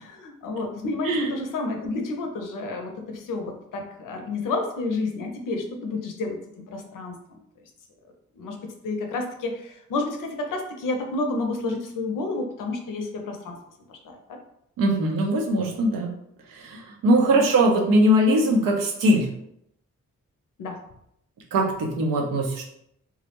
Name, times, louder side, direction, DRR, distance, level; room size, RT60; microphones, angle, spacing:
voice 1, 0.0-6.4 6.7-7.4 8.4-13.6 13.9-14.4 17.3-17.6 20.6-20.8, left 3 dB, 75° left, 4 dB, 0.6 m, -30 dB
voice 2, 14.8-16.1 16.6-19.3 21.5-22.6, right 1 dB, 85° right, 0 dB, 0.6 m, -21 dB
2.3 x 2.0 x 2.8 m, 0.74 s
supercardioid pair, 50°, 33 cm